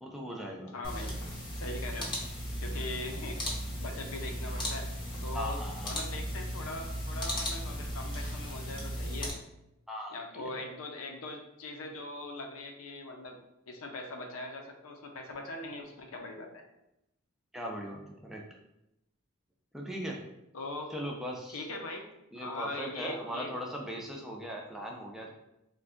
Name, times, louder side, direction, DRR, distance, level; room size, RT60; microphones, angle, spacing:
voice 1, 0.0-0.7 5.3-6.0 9.9-10.6 17.5-18.4 19.7-20.2 20.9-21.7 22.3-25.3, equal, ahead, -2 dB, 0.4 m, -39 dB
voice 2, 0.7-1.2 1.5-2.1 2.6-3.4 3.8-4.9 5.2-9.3 10.1-13.4 13.7-16.6 20.5-20.9 21.5-23.5, left 2 dB, 75° left, 3 dB, 0.5 m, -41 dB
sound 1, 0.8-9.3, equal, 25° left, 0.8 m, -36 dB
2.6 x 2.2 x 3.6 m, 0.87 s
head